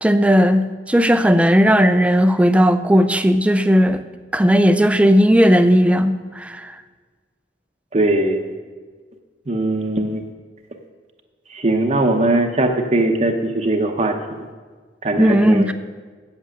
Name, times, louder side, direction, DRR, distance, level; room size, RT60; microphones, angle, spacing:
voice 1, 0.0-4.0 4.3-6.7 15.2-15.7, equal, 5° right, 10 dB, 0.4 m, -15 dB
voice 2, 7.9-8.5 9.5-10.2 11.5-14.5 15.0-15.7, right 2 dB, 40° right, 4 dB, 0.8 m, -20 dB
8.8 x 8.2 x 6.3 m, 1.5 s
head